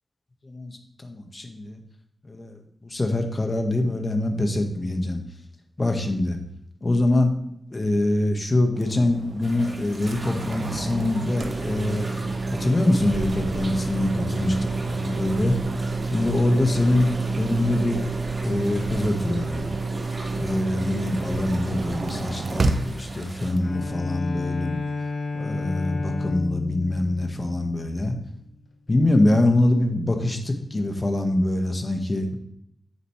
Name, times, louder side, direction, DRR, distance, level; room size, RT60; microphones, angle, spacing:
voice 1, 0.4-1.8 2.2-5.2 5.8-6.4 6.8-7.3 7.7-12.1 12.6-14.6 14.9-15.6 16.1-18.0 18.4-19.7 20.3-24.8 25.3-28.2 28.9-32.4, left 1 dB, 40° left, 5 dB, 1.5 m, -24 dB
sound 1, 8.8-24.0, right 3 dB, 65° right, 0.7 m, -29 dB
sound 2, 9.4-23.5, right 1 dB, 40° right, 3.4 m, -42 dB
Bowed string instrument, 23.6-28.2, left 3 dB, 80° left, 1.1 m, -31 dB
9.0 x 6.9 x 3.3 m, 0.75 s
cardioid pair, 40°, 0 cm